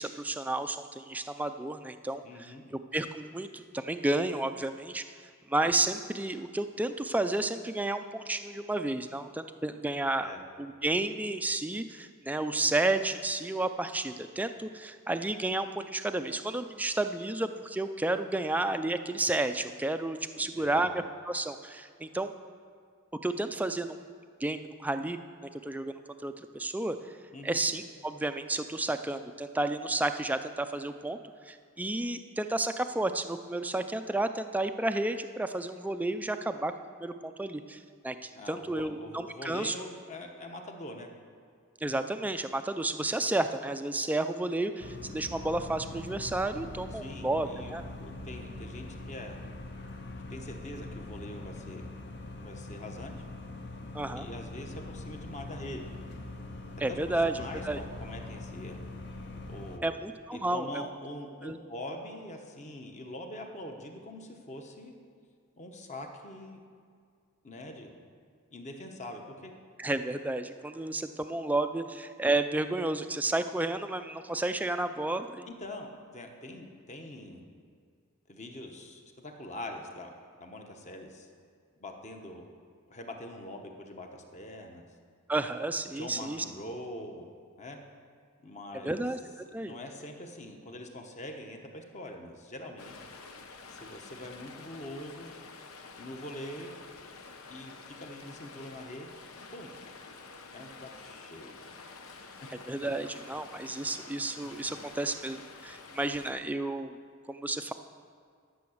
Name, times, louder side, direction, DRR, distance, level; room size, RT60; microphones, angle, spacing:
voice 1, 0.0-5.0 5.5-10.3 10.6-22.3 23.2-24.0 24.4-27.0 27.4-31.2 31.5-36.7 37.0-39.7 41.8-47.8 53.9-54.3 56.8-57.8 59.8-60.7 61.4-61.6 69.8-75.5 85.3-86.4 88.8-89.8 102.7-107.0 107.3-107.7, right 2 dB, 5° right, 8 dB, 0.3 m, -32 dB
voice 2, 2.2-2.6 10.2-10.4 20.4-20.9 27.3-27.6 38.3-41.1 46.9-49.4 50.3-51.9 52.4-53.1 54.1-55.8 56.9-58.8 59.5-60.0 60.3-64.9 65.6-66.6 67.4-67.9 68.5-69.5 75.5-77.4 78.3-80.1 80.4-81.3 81.8-82.5 82.9-84.9 86.0-87.3 87.6-87.8 88.4-89.0 89.4-92.9 93.7-95.3 96.0-96.8 97.5-99.1 99.5-99.7 100.5-101.6 102.4-102.5, left 1 dB, 35° left, 3 dB, 1.0 m, -43 dB
sound 1, 44.8-59.8, left 2 dB, 55° left, 0.8 m, -43 dB
Stream, 92.8-106.3, left 4 dB, 80° left, 0.9 m, -49 dB
11.5 x 6.9 x 6.5 m, 2.1 s
head